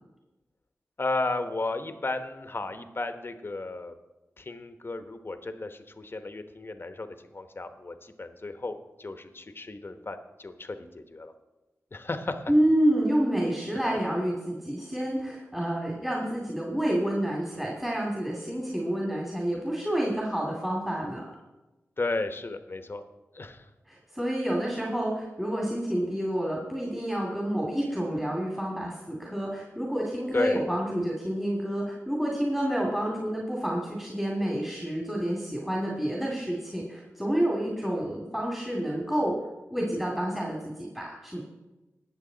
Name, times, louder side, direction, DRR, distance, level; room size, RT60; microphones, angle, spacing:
voice 1, 1.0-3.9 4.4-11.3 11.9-12.5 22.0-23.0 23.3-23.7 30.3-30.6, left 2 dB, 45° left, 8 dB, 1.1 m, -34 dB
voice 2, 12.5-21.2 23.9-39.3 39.7-41.4, right 1 dB, 5° right, -3 dB, 2.5 m, -29 dB
19.0 x 6.9 x 4.0 m, 1.1 s
cardioid pair, 45°, 5 cm